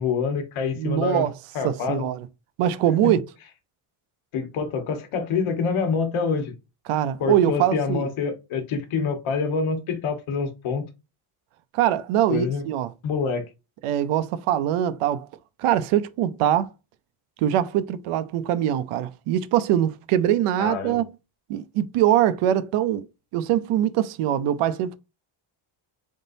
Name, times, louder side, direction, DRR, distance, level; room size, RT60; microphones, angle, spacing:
voice 1, 0.0-1.3 1.5-2.0 3.0-3.2 4.3-6.5 7.2-10.8 12.3-12.6 13.0-13.4 20.6-21.0, left 5 dB, 70° left, 1.3 m, -26 dB
voice 2, 0.8-1.3 1.6-2.3 2.6-3.2 6.9-8.1 11.7-12.9 13.8-15.3 15.6-16.7 17.4-21.0 21.5-23.0 23.3-25.0, right 11 dB, 85° right, 0.7 m, -23 dB
4.0 x 3.7 x 2.6 m
cardioid pair, 150°, 50 cm